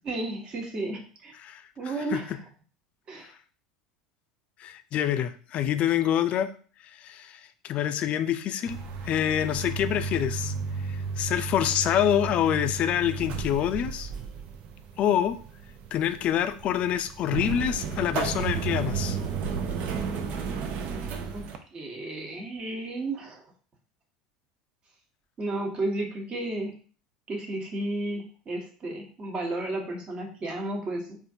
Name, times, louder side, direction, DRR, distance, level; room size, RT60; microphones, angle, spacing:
voice 1, 0.0-1.3 1.8-2.4 3.1-3.3 21.3-21.4 21.7-23.4 25.4-26.8 27.3-31.2, right 2 dB, 35° right, 2 dB, 1.1 m, -33 dB
voice 2, 4.6-6.5 7.0-8.8 9.0-10.5 10.9-14.1 15.0-15.3 15.9-19.2, left 10 dB, 45° left, 10 dB, 0.4 m, -26 dB
sound 1, 8.6-21.6, right 5 dB, 55° right, 0.5 m, -33 dB
4.2 x 2.5 x 2.7 m, 0.41 s
hypercardioid pair, 85°, 3 cm